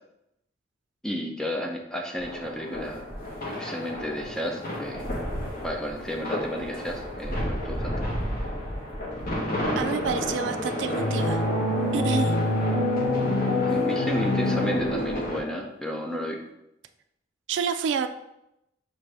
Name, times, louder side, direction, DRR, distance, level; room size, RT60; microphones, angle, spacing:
voice 1, 1.0-3.0 3.6-5.1 5.6-8.0 13.6-16.4, equal, 5° left, 1 dB, 0.5 m, -32 dB
sound 1, 2.2-15.4, left 1 dB, 50° left, 1.0 m, -32 dB
voice 2, 9.8-11.4 11.9-12.4 17.5-18.1, right 6 dB, 70° right, 9 dB, 0.3 m, -28 dB
sound 2, 10.9-15.5, left 1 dB, 80° left, 0.7 m, -26 dB
6.1 x 2.6 x 3.3 m, 0.85 s
head